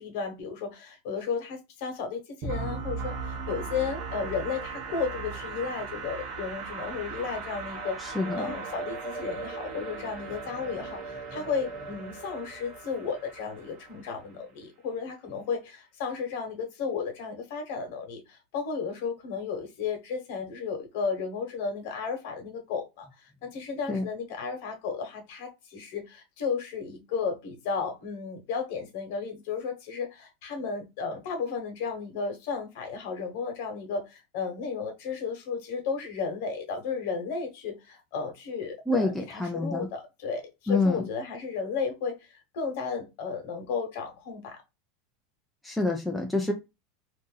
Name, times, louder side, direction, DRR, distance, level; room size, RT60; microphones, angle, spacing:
voice 1, 0.0-44.6, left 5 dB, 55° left, 1.1 m, -34 dB
sound 1, 2.4-14.2, right 4 dB, 35° right, 0.8 m, -38 dB
voice 2, 8.0-8.5 23.9-24.0 38.9-39.9 40.7-41.1 45.6-46.5, left 2 dB, ahead, 0.4 m, -27 dB
2.6 x 2.6 x 3.8 m
supercardioid pair, 175°, 0 cm